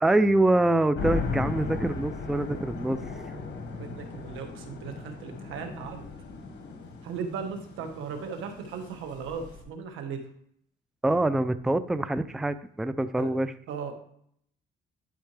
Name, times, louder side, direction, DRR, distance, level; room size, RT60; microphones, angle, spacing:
voice 1, 0.0-3.0 11.0-13.5, right 2 dB, ahead, 12 dB, 0.4 m, -25 dB
sound 1, 0.9-9.6, left 4 dB, 60° left, 1.7 m, -36 dB
voice 2, 3.8-6.1 7.0-10.3 13.2-13.3 13.7-13.9, right 6 dB, 90° right, 5 dB, 1.4 m, -37 dB
11.5 x 4.3 x 3.3 m, 0.67 s
cardioid pair, 90°, 20 cm